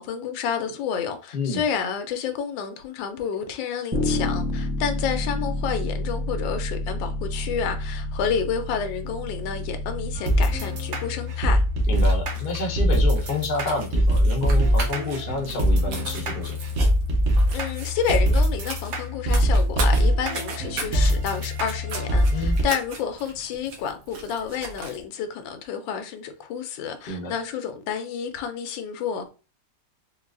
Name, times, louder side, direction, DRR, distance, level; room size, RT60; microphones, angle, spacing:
voice 1, 0.0-11.6 17.5-29.3, left 7 dB, 90° left, 1.3 m, -30 dB
voice 2, 1.3-1.6 11.9-16.6 22.3-22.6 27.1-27.3, left 2 dB, 70° left, 0.5 m, -29 dB
Bass guitar, 3.9-10.2, left 1 dB, 25° right, 0.5 m, -29 dB
sound 1, 10.1-22.6, equal, 60° right, 0.8 m, -22 dB
sound 2, 11.8-25.0, right 3 dB, 80° right, 1.5 m, -38 dB
4.1 x 2.3 x 2.4 m
omnidirectional pair, 2.0 m